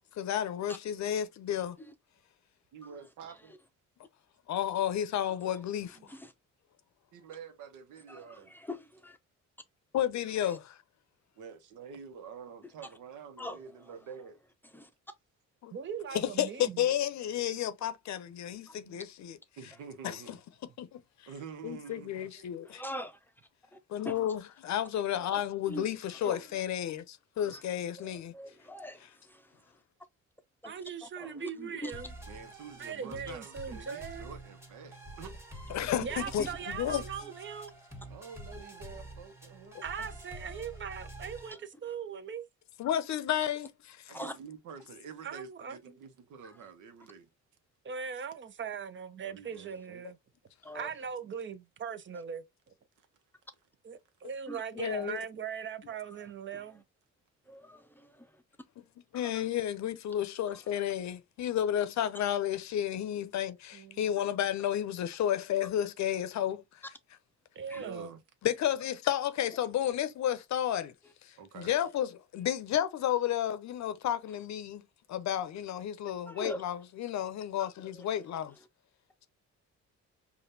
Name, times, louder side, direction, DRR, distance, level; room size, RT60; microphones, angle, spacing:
voice 1, 0.1-1.8 4.5-6.0 9.9-10.8 15.6-15.7 16.1-19.4 20.0-20.4 20.8-21.0 21.6-22.8 23.9-28.3 35.7-37.0 42.8-43.7 44.1-44.2 54.8-55.2 59.1-66.8 68.4-70.9 71.2-74.8 75.1-78.5, left 10 dB, 65° left, 0.6 m, -32 dB
voice 2, 2.7-3.5 7.1-8.5 11.4-14.4 17.5-17.6 19.6-20.4 21.3-22.5 32.3-35.4 38.1-39.8 44.1-47.3 49.2-50.0 53.0-53.1 67.7-68.2 71.4-71.7, right 6 dB, 85° right, 0.9 m, -48 dB
voice 3, 8.1-9.2 10.4-10.6 13.4-13.9 14.6-14.9 18.7-18.8 22.6-23.3 23.7-23.8 24.0-24.2 25.1-25.9 26.2-26.5 27.5-27.6 28.0-29.8 30.6-31.9 36.4-36.6 41.5-41.6 44.1-44.3 46.4-46.6 50.6-50.9 54.5-54.6 54.9-55.1 56.5-56.6 57.5-58.4 59.2-59.5 60.5-60.8 67.7-67.8 71.0-71.1 76.3-76.6 77.9-78.1, equal, 5° left, 0.6 m, -44 dB
voice 4, 15.7-16.9 18.8-19.0 30.6-32.1 32.8-34.3 36.0-37.8 39.8-42.4 45.2-46.0 47.8-50.2 50.7-52.4 53.8-56.8 63.7-64.1 67.5-68.2, right 7 dB, 40° right, 0.6 m, -40 dB
sound 1, 31.9-41.5, right 1 dB, 10° right, 1.3 m, -47 dB
5.0 x 2.4 x 2.6 m
cardioid pair, 90°, 30 cm